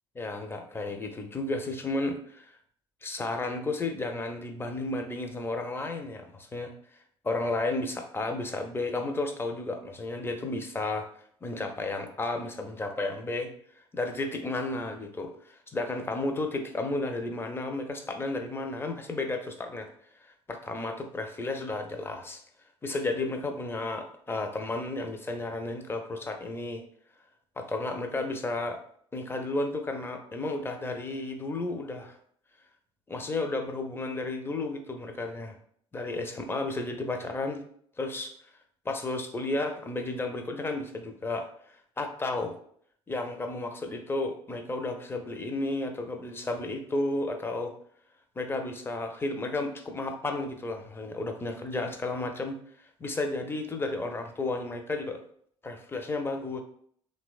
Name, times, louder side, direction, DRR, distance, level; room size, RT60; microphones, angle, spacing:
voice 1, 0.2-2.6 3.0-11.1 11.4-13.5 13.9-19.9 20.2-22.4 22.8-26.8 27.6-28.8 29.1-32.2 33.1-35.5 35.9-37.7 38.0-38.3 38.8-41.5 42.0-42.6 43.1-47.7 48.4-55.2 55.6-56.6, left 2 dB, 15° left, 5 dB, 0.4 m, -33 dB
2.9 x 2.1 x 2.3 m, 0.62 s
figure-of-eight pair, 55°, 14 cm